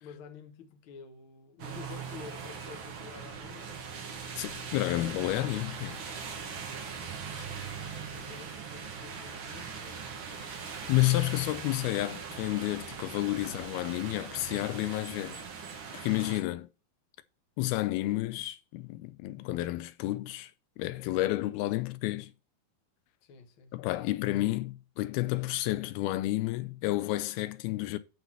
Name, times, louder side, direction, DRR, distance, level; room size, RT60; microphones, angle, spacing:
voice 1, 0.0-3.8 7.4-10.8 23.2-23.8, left 6 dB, 65° left, 1.2 m, -50 dB
sound 1, 1.6-16.4, right 6 dB, 60° right, 1.3 m, -41 dB
voice 2, 4.4-6.0 10.4-10.5 10.9-15.4 15.9-16.7 17.6-20.5 20.8-22.3 23.7-28.0, left 17 dB, 90° left, 2.6 m, -30 dB
9.3 x 4.1 x 5.9 m
omnidirectional pair, 4.3 m